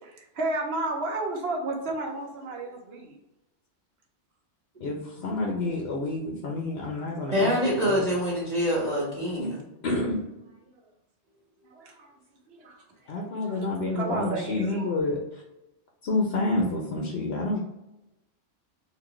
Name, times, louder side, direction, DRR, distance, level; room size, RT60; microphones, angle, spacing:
voice 1, 0.0-3.2 10.7-10.8 11.6-12.1 12.5-12.8 13.1-13.7 14.0-14.9, right 2 dB, 60° right, 1 dB, 1.1 m, -33 dB
voice 2, 4.8-8.0 9.4-9.5 9.8-10.2 13.1-15.2 16.0-17.6, left 2 dB, 60° left, 0 dB, 0.9 m, -28 dB
voice 3, 7.3-9.6, equal, 30° right, -8 dB, 1.6 m, -25 dB
4.0 x 2.6 x 3.1 m, 0.94 s
omnidirectional pair, 1.3 m